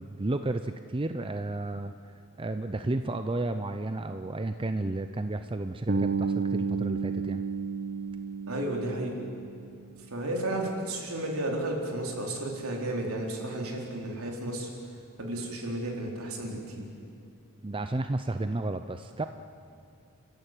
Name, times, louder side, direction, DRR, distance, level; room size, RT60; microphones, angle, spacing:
voice 1, 0.0-1.9 2.4-7.4 17.6-19.3, right 2 dB, 25° right, 8 dB, 0.6 m, -32 dB
Bass guitar, 5.9-9.8, right 5 dB, 55° right, 1.2 m, -31 dB
voice 2, 8.5-9.2 10.1-14.7 15.2-16.9, right 1 dB, 70° right, 0 dB, 4.2 m, -33 dB
29.5 x 14.5 x 9.2 m, 2.7 s
head